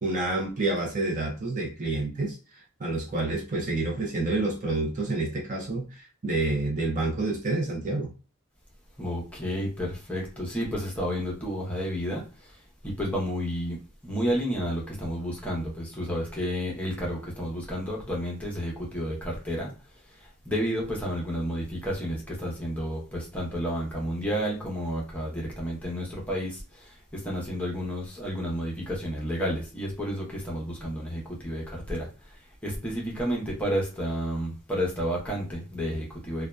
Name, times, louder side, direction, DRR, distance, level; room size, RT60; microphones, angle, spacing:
voice 1, 0.0-8.1, right 2 dB, 35° right, 0.5 m, -28 dB
voice 2, 9.0-19.7 20.1-36.5, equal, 5° left, 0.7 m, -31 dB
2.6 x 2.2 x 2.2 m
head